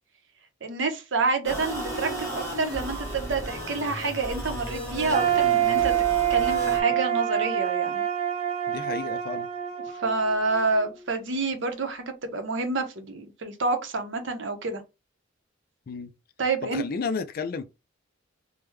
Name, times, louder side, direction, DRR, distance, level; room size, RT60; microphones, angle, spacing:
voice 1, 0.6-5.9 6.3-8.0 10.0-14.8 16.4-16.8, right 3 dB, 65° right, 0.7 m, -28 dB
sound 1, 1.4-6.8, right 1 dB, 15° left, 1.2 m, -34 dB
sound 2, 5.1-11.0, right 11 dB, 30° right, 0.5 m, -26 dB
voice 2, 8.7-9.5 15.9-16.1 16.7-17.6, left 5 dB, 50° left, 0.4 m, -32 dB
3.4 x 2.2 x 3.1 m
head